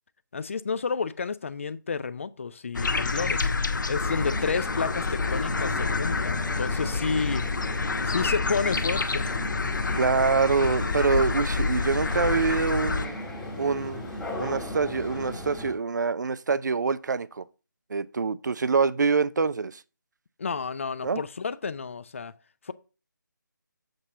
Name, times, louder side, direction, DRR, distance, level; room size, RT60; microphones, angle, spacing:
voice 1, 0.3-3.5 3.9-7.5 8.0-9.3 20.4-22.3 22.6-22.7, left 5 dB, 40° left, 0.5 m, -31 dB
sound 1, 2.7-13.1, left 4 dB, 70° left, 1.0 m, -28 dB
sound 2, 3.9-15.7, left 1 dB, 5° left, 1.1 m, -37 dB
voice 2, 9.9-13.2 13.6-14.1 14.4-17.4 17.9-19.8 21.0-21.2, right 5 dB, 60° right, 0.5 m, -25 dB
7.9 x 4.1 x 6.0 m
figure-of-eight pair, 165°, 11 cm